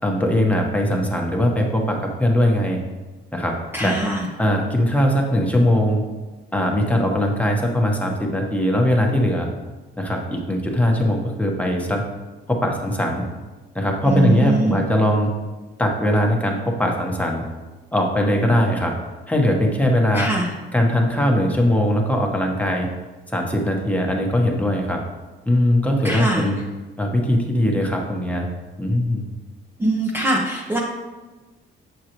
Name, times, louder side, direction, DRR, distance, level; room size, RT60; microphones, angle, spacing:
voice 1, 0.0-2.8 3.3-3.5 3.8-4.0 4.4-6.0 6.5-9.5 10.0-12.0 12.5-13.2 13.7-15.3 15.8-17.4 17.9-18.9 19.3-20.3 20.7-22.9 23.3-25.0 25.5-26.6 27.0-28.5 28.8-29.2, equal, 5° left, 0 dB, 1.2 m, -20 dB
voice 2, 3.7-4.3 14.1-14.8 20.1-20.5 26.0-26.5 29.8-30.8, right 1 dB, 10° right, -3 dB, 0.8 m, -22 dB
7.3 x 6.4 x 3.0 m, 1.2 s
cardioid pair, 90°, 20 cm